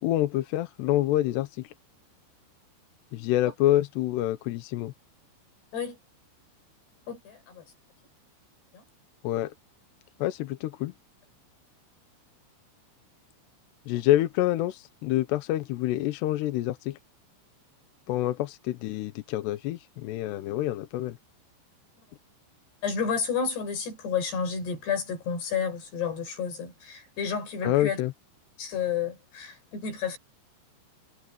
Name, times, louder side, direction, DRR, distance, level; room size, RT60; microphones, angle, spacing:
voice 1, 0.0-1.7 3.1-4.9 9.2-9.5 10.2-10.9 13.9-17.0 18.1-21.2 27.6-28.1, left 14 dB, 75° left, 2.7 m, -27 dB
voice 2, 7.1-7.6 8.7-8.8 22.8-28.0 28.6-30.2, left 6 dB, 60° left, 8.2 m, -31 dB
omnidirectional pair, 5.6 m